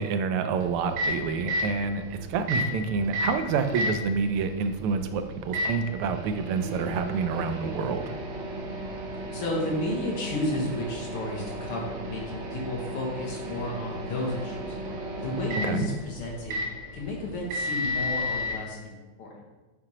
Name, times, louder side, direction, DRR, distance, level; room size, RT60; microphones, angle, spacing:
voice 1, 0.0-8.1 15.6-15.9, right 5 dB, 90° right, 8 dB, 1.5 m, -28 dB
Microwave oven, 0.6-18.6, left 1 dB, 70° right, 1.6 m, -34 dB
voice 2, 9.3-14.8 15.2-16.6 16.9-19.3, left 1 dB, 85° left, -1 dB, 2.2 m, -32 dB
7.8 x 4.9 x 2.9 m, 1.1 s
omnidirectional pair, 2.4 m